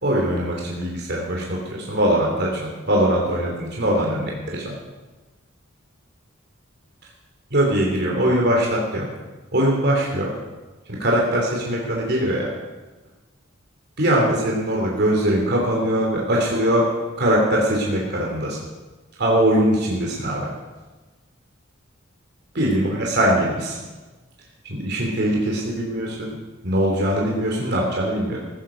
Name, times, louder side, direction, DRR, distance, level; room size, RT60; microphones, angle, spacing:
voice 1, 0.0-4.7 7.5-9.1 9.5-10.3 10.9-12.5 14.0-16.8 17.2-18.6 19.2-20.5 22.5-23.8 24.6-26.4 26.6-28.4, right 1 dB, 55° right, -2 dB, 2.9 m, -21 dB
16.0 x 13.0 x 5.1 m, 1.2 s
head